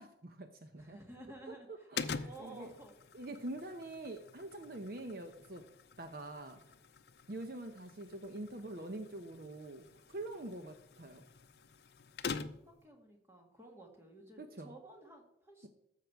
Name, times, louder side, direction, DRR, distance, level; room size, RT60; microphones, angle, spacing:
voice 1, 0.0-1.0 1.5-2.7 3.1-5.6 6.0-6.6 7.3-11.2 14.4-14.7, right 2 dB, 50° right, 7 dB, 0.7 m, -45 dB
voice 2, 0.8-2.9 12.3-15.7, right 1 dB, 15° right, 1 dB, 1.9 m, -54 dB
sound 1, 2.0-12.8, left 5 dB, 60° left, 0.6 m, -46 dB
13.0 x 7.6 x 4.6 m, 0.81 s
head